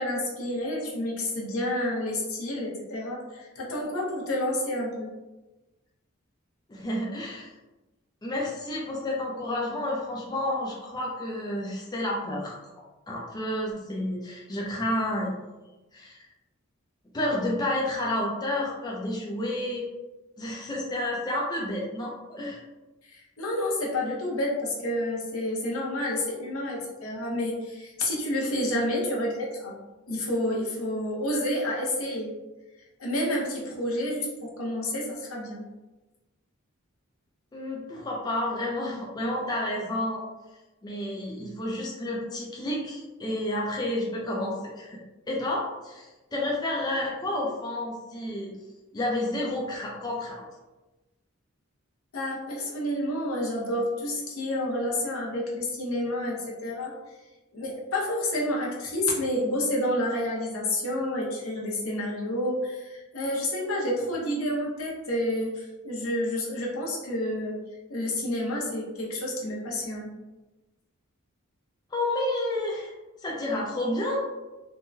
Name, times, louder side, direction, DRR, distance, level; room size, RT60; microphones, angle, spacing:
voice 1, 0.0-5.1 23.0-29.8 30.1-32.3 33.0-35.6 52.1-56.9 57.5-67.6 67.9-70.1, left 1 dB, 80° left, -3 dB, 0.8 m, -29 dB
voice 2, 6.7-7.5 8.2-12.6 13.1-15.3 15.9-16.2 17.1-19.8 20.4-22.6 37.5-40.2 40.8-45.0 45.3-48.6 48.9-50.4 71.9-72.9 73.2-74.2, left 1 dB, 20° left, -3 dB, 0.4 m, -30 dB
3.5 x 2.1 x 2.6 m, 1.1 s
head